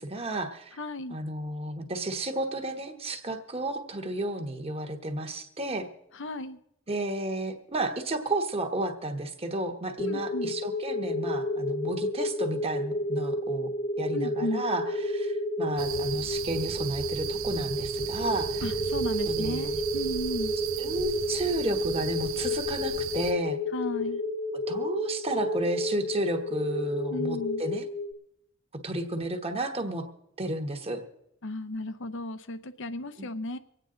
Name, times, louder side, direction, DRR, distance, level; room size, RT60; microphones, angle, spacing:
voice 1, 0.0-0.8 1.1-5.9 6.9-13.7 14.0-18.7 19.2-19.8 20.8-23.6 24.7-27.9 28.8-30.0 30.4-31.0 33.2-33.3, right 2 dB, 30° right, 6 dB, 1.2 m, -32 dB
voice 2, 0.8-1.2 6.2-6.6 10.1-10.5 14.1-14.7 18.6-20.5 23.7-24.2 27.1-27.6 31.4-33.6, left 1 dB, 65° left, 12 dB, 0.8 m, -34 dB
sound 1, 10.0-28.1, left 1 dB, 30° left, 0.7 m, -31 dB
sound 2, 15.8-23.3, right 8 dB, 75° right, 0.8 m, -36 dB
24.5 x 9.1 x 3.8 m, 0.81 s
head